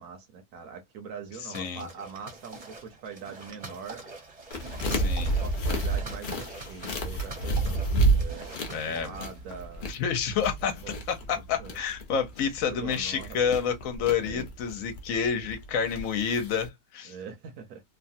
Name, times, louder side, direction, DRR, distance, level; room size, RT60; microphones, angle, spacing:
voice 1, 0.0-4.0 4.9-9.9 10.6-11.0 11.6-11.8 12.6-13.4 14.1-14.4 17.1-17.8, right 6 dB, 75° right, 1.2 m, -43 dB
voice 2, 1.5-1.9 4.9-5.3 8.7-9.2 9.9-10.8 11.1-17.1, left 7 dB, 65° left, 1.1 m, -29 dB
sound 1, 1.5-9.6, right 3 dB, 30° right, 0.8 m, -45 dB
sound 2, 4.5-16.7, right 2 dB, 45° left, 0.7 m, -30 dB
3.1 x 2.2 x 2.6 m
omnidirectional pair, 1.6 m